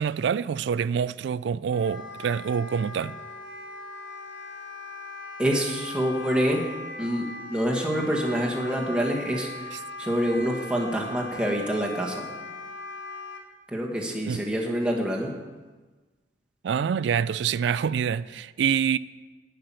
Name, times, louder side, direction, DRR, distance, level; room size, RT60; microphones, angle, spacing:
voice 1, 0.0-3.2 14.3-14.4 16.6-19.0, right 7 dB, 70° right, 0.3 m, -26 dB
Wind instrument woodwind instrument, 1.7-13.4, left 3 dB, 75° left, 1.5 m, -39 dB
voice 2, 5.4-6.7 7.0-12.3 13.7-15.3, equal, 5° right, 1.6 m, -26 dB
11.5 x 5.9 x 8.8 m
head